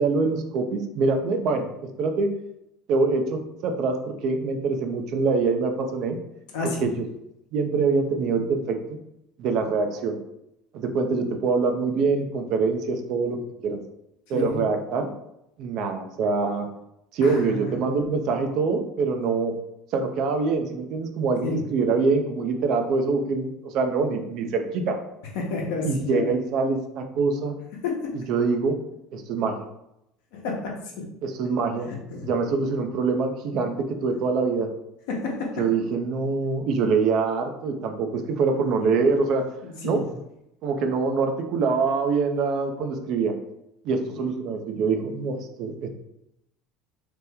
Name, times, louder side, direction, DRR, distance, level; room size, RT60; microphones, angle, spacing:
voice 1, 0.0-2.3 2.9-6.2 6.8-7.1 7.5-8.8 9.4-10.2 10.7-13.4 13.6-13.8 14.3-15.1 15.6-16.7 17.1-19.5 19.9-25.0 25.8-27.5 28.1-28.8 29.1-29.5 31.2-31.9 32.2-34.7 35.6-39.4 39.8-40.0 40.6-43.3 43.8-45.9, right 4 dB, 60° right, 5 dB, 0.5 m, -24 dB
voice 2, 6.5-6.9 14.3-14.6 17.2-17.8 21.4-21.6 25.3-26.3 27.8-28.0 30.3-30.7 32.1-32.3 35.1-35.5 39.6-40.0 44.1-44.2, left 3 dB, 70° left, -1 dB, 0.8 m, -30 dB
2.9 x 2.1 x 3.4 m, 0.83 s
hypercardioid pair, 75°, 0 cm